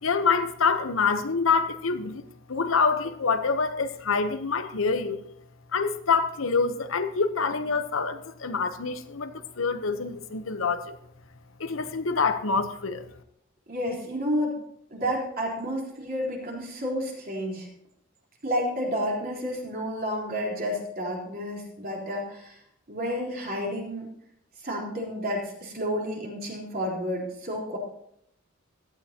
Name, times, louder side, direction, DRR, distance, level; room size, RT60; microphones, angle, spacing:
voice 1, 0.0-2.2 2.5-5.2 5.7-10.9 11.6-13.1, left 5 dB, 80° left, 1.0 m, -26 dB
voice 2, 13.7-14.6 14.9-17.7 18.4-22.6 22.9-24.1 24.6-27.8, equal, 50° right, 3.9 m, -30 dB
17.0 x 12.5 x 2.9 m
head